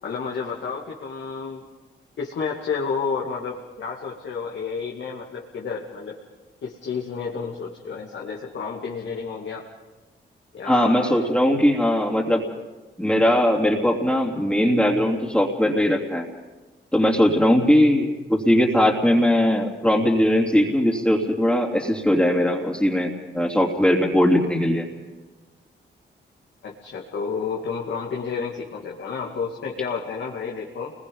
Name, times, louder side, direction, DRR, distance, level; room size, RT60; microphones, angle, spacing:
voice 1, 0.0-1.6 2.2-6.2 6.6-9.7 10.5-11.3 26.6-30.9, left 5 dB, 75° left, -2 dB, 2.5 m, -31 dB
voice 2, 10.6-12.4 13.0-16.2 16.9-24.9, left 1 dB, 5° left, -2 dB, 3.0 m, -20 dB
29.5 x 21.5 x 5.5 m, 1.2 s
cardioid pair, 80°, 19 cm